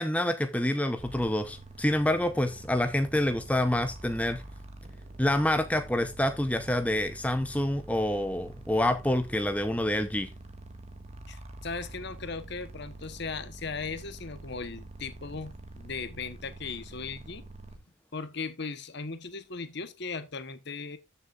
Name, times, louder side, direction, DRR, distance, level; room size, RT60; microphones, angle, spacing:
voice 1, 0.0-4.4 5.2-10.3, left 1 dB, 5° left, 0.7 m, -27 dB
sound 1, 1.0-17.8, right 2 dB, 30° right, 1.6 m, -46 dB
voice 2, 11.3-17.5 18.1-21.0, left 4 dB, 55° left, 1.1 m, -38 dB
13.5 x 6.9 x 2.5 m
head